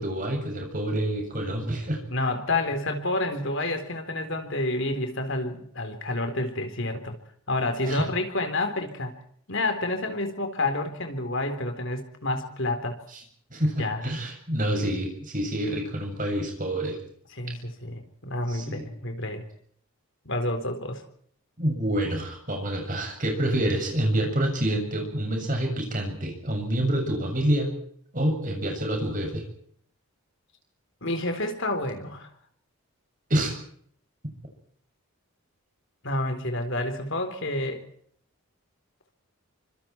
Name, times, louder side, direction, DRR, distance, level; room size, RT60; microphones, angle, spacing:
voice 1, 0.0-2.0 7.8-8.1 13.1-13.2 13.5-17.0 18.5-18.9 21.6-27.7 28.1-29.4 33.3-33.5, right 1 dB, 35° right, 3 dB, 7.4 m, -27 dB
voice 2, 2.1-7.1 7.5-9.1 9.5-13.0 13.8-14.0 17.4-19.4 20.2-21.0 31.0-32.3 36.0-37.8, left 2 dB, 55° left, 7 dB, 4.0 m, -29 dB
28.5 x 26.0 x 4.6 m, 0.62 s
head